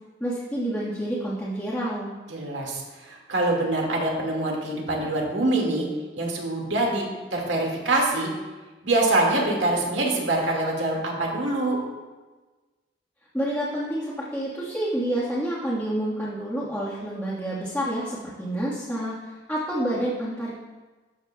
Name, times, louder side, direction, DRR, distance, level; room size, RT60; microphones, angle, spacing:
voice 1, 0.2-2.1 13.3-20.5, right 1 dB, 10° left, -10 dB, 1.5 m, -28 dB
voice 2, 2.3-5.9 6.2-7.1 7.3-8.3 8.8-11.8, right 2 dB, 75° right, -1 dB, 1.9 m, -24 dB
12.5 x 7.5 x 2.3 m, 1.3 s
head